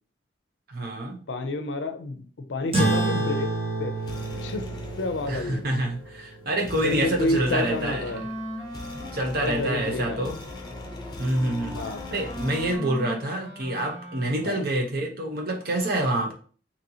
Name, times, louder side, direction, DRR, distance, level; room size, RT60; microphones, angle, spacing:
voice 1, 0.7-1.2 5.3-8.1 9.1-10.4 11.2-11.8 12.1-16.3, right 1 dB, 55° right, 2 dB, 0.8 m, -27 dB
voice 2, 1.3-3.5 3.8-4.0 4.4-4.6 5.0-5.8 6.8-8.2 9.4-10.3 11.7-12.0 14.4-14.7, left 2 dB, 75° left, 9 dB, 0.5 m, -29 dB
sound 1, 2.7-7.6, right 2 dB, 30° right, 1.0 m, -29 dB
sound 2, 3.4-12.8, left 2 dB, 25° left, 0.6 m, -41 dB
Wind instrument woodwind instrument, 7.2-14.7, equal, 80° right, 1.4 m, -40 dB
4.1 x 2.9 x 2.8 m, 0.42 s
head